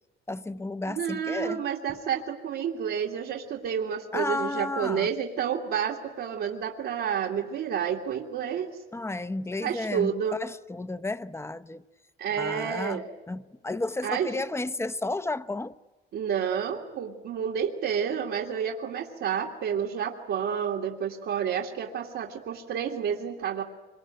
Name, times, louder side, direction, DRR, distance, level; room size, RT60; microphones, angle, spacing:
voice 1, 0.3-1.6 4.1-5.1 8.9-11.8 12.3-15.7, left 2 dB, 15° left, 0.9 m, -32 dB
voice 2, 0.9-8.8 9.6-10.4 12.2-13.1 14.0-14.3 16.1-23.6, right 8 dB, 75° right, 2.4 m, -30 dB
25.5 x 24.0 x 9.0 m
cardioid pair, 90°, 20 cm